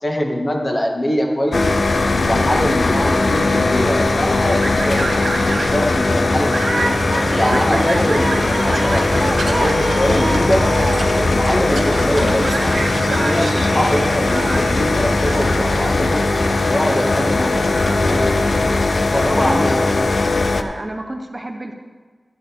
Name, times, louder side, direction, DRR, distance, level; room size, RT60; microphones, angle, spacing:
voice 1, 0.0-1.8 2.2-6.9 7.3-10.7 11.1-16.3 16.7-17.7 19.1-19.9, equal, 30° left, 0 dB, 1.8 m, -22 dB
sound 1, 1.5-20.6, left 3 dB, 65° left, 0.6 m, -19 dB
sound 2, 3.1-18.8, right 2 dB, 65° right, 0.9 m, -26 dB
sound 3, 6.7-13.7, right 2 dB, 85° right, 1.3 m, -36 dB
voice 2, 19.2-19.8 20.1-21.7, right 1 dB, 35° right, 4 dB, 0.8 m, -30 dB
12.5 x 10.5 x 3.6 m, 1.5 s
wide cardioid pair, 65°, 0 cm